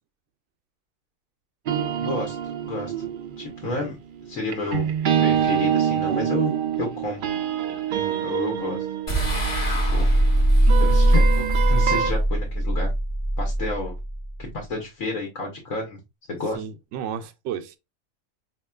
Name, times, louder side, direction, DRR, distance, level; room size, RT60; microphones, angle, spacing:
sound 1, 1.7-12.1, right 8 dB, 90° right, 0.4 m, -26 dB
voice 1, 1.9-3.1 3.4-4.0 4.2-4.9 5.2-6.5 6.8-7.2 8.2-8.8 9.7-10.1 10.8-12.9 13.4-14.0 14.4-16.0 16.3-16.6, left 2 dB, 75° left, 1.4 m, -31 dB
voice 2, 3.6-3.9 7.9-8.2 16.5-17.8, right 8 dB, 65° right, 0.8 m, -34 dB
sound 2, 9.1-14.4, right 1 dB, 35° left, 1.2 m, -20 dB
4.4 x 2.9 x 2.2 m
omnidirectional pair, 1.4 m